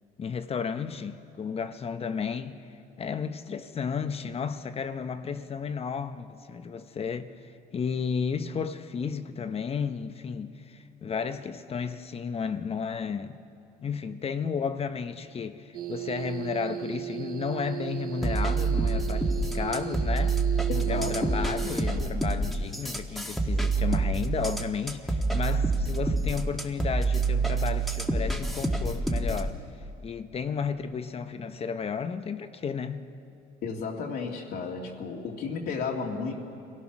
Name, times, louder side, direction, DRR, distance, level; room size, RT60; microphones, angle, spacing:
voice 1, 0.2-2.6 3.0-13.4 13.8-20.4 20.9-29.6 30.0-33.1, left 6 dB, 35° left, 0.9 m, -33 dB
sound 1, 15.7-22.2, right 10 dB, 65° right, 1.1 m, -36 dB
valine-drums, 18.2-29.5, right 3 dB, ahead, 1.5 m, -27 dB
voice 2, 20.7-21.4 33.6-36.3, left 5 dB, 70° left, 2.2 m, -33 dB
25.5 x 17.0 x 6.0 m
cardioid pair, 110°, 17 cm